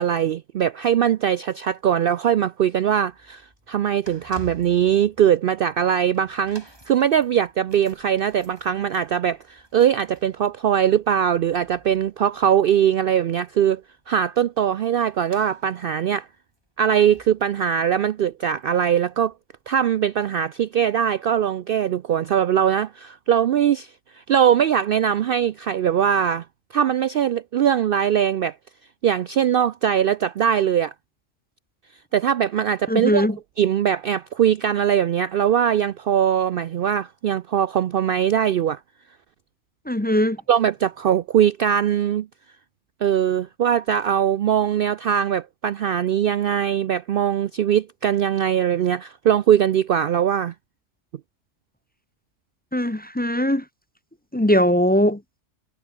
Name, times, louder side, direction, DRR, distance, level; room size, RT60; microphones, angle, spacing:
voice 1, 0.0-3.4 3.7-13.8 14.1-16.3 16.8-19.3 19.7-26.5 26.7-28.6 29.0-30.9 32.1-33.3 33.6-38.8 40.5-42.3 43.0-50.5, right 9 dB, 60° right, 0.6 m, -21 dB
sound 1, 3.0-19.3 19.6-19.8 20.6-20.7, right 1 dB, 20° right, 5.6 m, -51 dB
voice 2, 32.9-33.4 39.9-40.4 52.7-53.6 54.3-55.2, equal, 10° left, 0.5 m, -20 dB
omnidirectional pair, 1.3 m